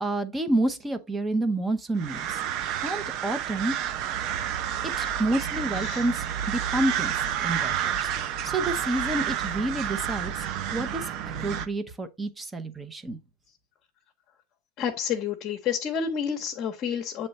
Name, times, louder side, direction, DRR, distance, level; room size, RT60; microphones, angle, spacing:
voice 1, 0.0-2.4 2.8-3.7 4.8-7.1 7.4-11.1 11.4-13.2, right 2 dB, 15° right, 0.7 m, -29 dB
sound 1, 2.0-11.7, right 9 dB, 50° right, 0.6 m, -30 dB
voice 2, 14.8-17.3, left 7 dB, 40° left, 0.9 m, -29 dB
7.5 x 3.2 x 4.1 m
supercardioid pair, 120°, 0 cm